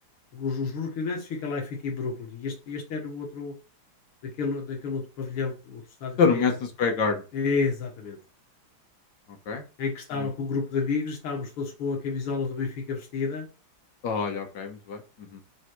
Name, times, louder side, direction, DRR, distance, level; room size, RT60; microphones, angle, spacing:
voice 1, 0.3-3.5 4.4-6.5 7.3-8.2 9.8-13.5, left 4 dB, 80° left, 0 dB, 2.5 m, -30 dB
voice 2, 6.2-7.2 9.5-9.6 10.1-10.3 14.0-15.4, left 5 dB, 55° left, 5 dB, 1.7 m, -26 dB
5.2 x 4.4 x 4.6 m, 0.33 s
omnidirectional pair, 2.4 m